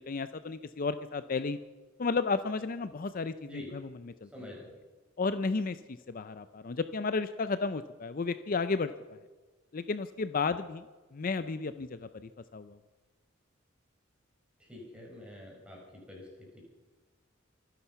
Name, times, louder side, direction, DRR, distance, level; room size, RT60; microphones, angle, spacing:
voice 1, 0.0-1.6 2.0-4.3 5.2-9.2 9.7-10.9 11.1-12.8, left 4 dB, 40° left, 12 dB, 0.5 m, -33 dB
voice 2, 4.3-4.7 14.6-16.6, left 1 dB, 5° right, -3 dB, 6.2 m, -47 dB
25.0 x 10.0 x 5.8 m, 1.3 s
head